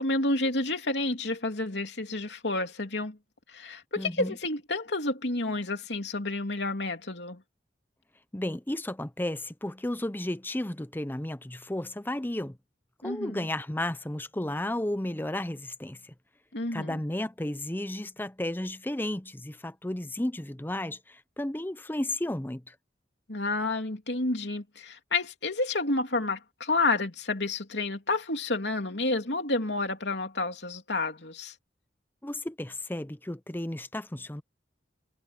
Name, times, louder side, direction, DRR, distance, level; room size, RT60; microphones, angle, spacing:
voice 1, 0.0-3.2 3.5-7.4 13.0-13.5 16.5-17.0 23.3-31.5, left 2 dB, 75° left, 3.1 m, -30 dB
voice 2, 4.0-4.3 8.3-12.6 13.0-16.0 16.7-22.7 32.2-34.4, left 1 dB, 10° left, 0.7 m, -33 dB
head